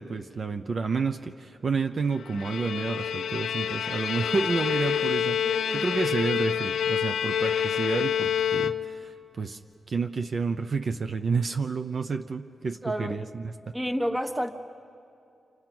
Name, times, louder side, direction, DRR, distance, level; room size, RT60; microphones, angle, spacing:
voice 1, 0.0-9.6 9.9-13.5, right 4 dB, 50° right, 6 dB, 0.7 m, -30 dB
Bowed string instrument, 2.2-9.2, left 8 dB, 90° left, 0.7 m, -28 dB
voice 2, 5.4-5.9 12.8-13.3 13.7-14.5, equal, 10° right, 7 dB, 1.3 m, -30 dB
28.0 x 28.0 x 6.1 m, 2.6 s
cardioid pair, 105°, 0 cm